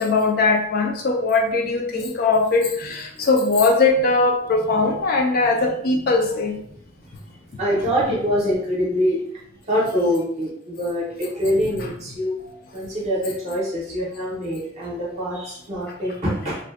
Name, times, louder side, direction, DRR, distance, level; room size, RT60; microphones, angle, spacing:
voice 1, 0.0-6.6, left 3 dB, 50° left, 2 dB, 0.4 m, -20 dB
voice 2, 7.6-9.2 9.7-12.4 12.7-16.6, equal, 35° right, -5 dB, 0.6 m, -24 dB
2.5 x 2.1 x 2.3 m, 0.70 s
head